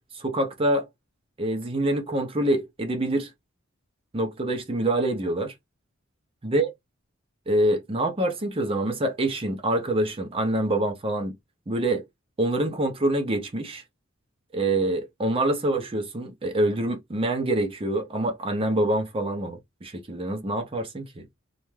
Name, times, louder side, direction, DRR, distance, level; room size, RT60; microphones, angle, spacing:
voice 1, 0.1-0.9 1.4-3.3 4.1-5.5 6.4-6.7 7.5-11.4 11.7-12.0 12.4-13.8 14.5-21.2, right 1 dB, 25° right, 0.5 m, -26 dB
2.5 x 2.2 x 3.1 m
head